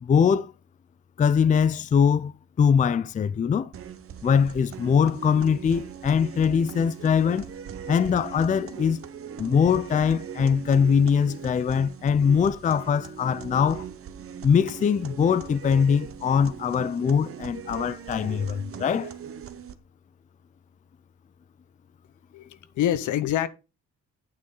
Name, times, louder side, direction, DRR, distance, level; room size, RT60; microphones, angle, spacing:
voice 1, 0.0-0.5 1.2-2.3 2.6-3.7 4.2-7.5 7.9-9.0 9.4-13.9 14.4-19.1, left 7 dB, 25° left, 0.4 m, -22 dB
sound 1, 3.7-19.7, right 7 dB, 45° right, 1.0 m, -40 dB
voice 2, 22.3-23.5, left 11 dB, 75° left, 0.9 m, -26 dB
8.7 x 6.9 x 3.8 m
cardioid pair, 90°, 30 cm